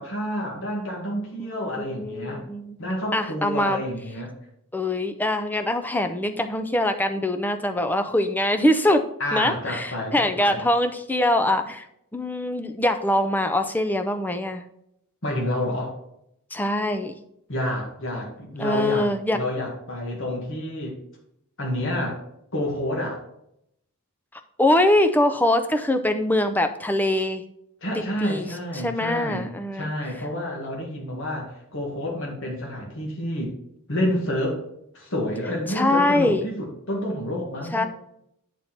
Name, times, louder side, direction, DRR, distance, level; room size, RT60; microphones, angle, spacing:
voice 1, 0.0-2.4 2.8-4.3 9.2-10.6 15.2-16.0 17.5-21.0 21.6-22.2 22.5-23.2 27.8-33.5 33.9-34.6 34.9-37.9, left 1 dB, 60° left, -1 dB, 1.9 m, -29 dB
voice 2, 1.8-2.8 3.1-3.8 4.7-9.0 9.3-11.8 12.1-14.6 16.5-17.2 18.6-19.4 24.6-27.4 28.2-28.5 28.8-29.9 35.7-36.4 37.7-37.9, left 1 dB, 10° left, 8 dB, 0.5 m, -23 dB
9.0 x 4.3 x 4.5 m, 0.76 s
head